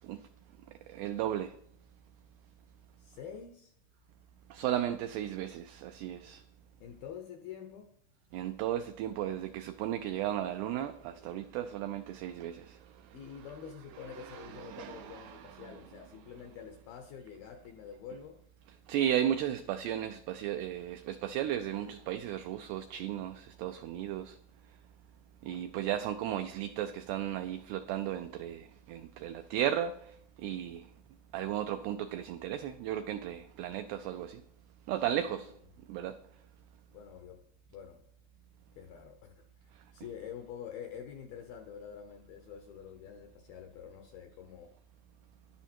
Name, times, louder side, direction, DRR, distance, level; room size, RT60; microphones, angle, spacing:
voice 1, 0.9-1.5 4.5-6.4 8.3-12.8 14.1-15.7 18.9-24.4 25.4-29.9 30.4-30.9 31.3-34.4 34.9-35.5 35.9-36.2, right 11 dB, 85° right, 2.3 m, -35 dB
voice 2, 3.0-3.7 6.8-7.9 13.1-18.4 35.3-35.5 36.9-37.4 37.7-38.0 38.8-44.7, left 8 dB, 80° left, 2.2 m, -47 dB
12.0 x 10.5 x 4.3 m
omnidirectional pair, 5.3 m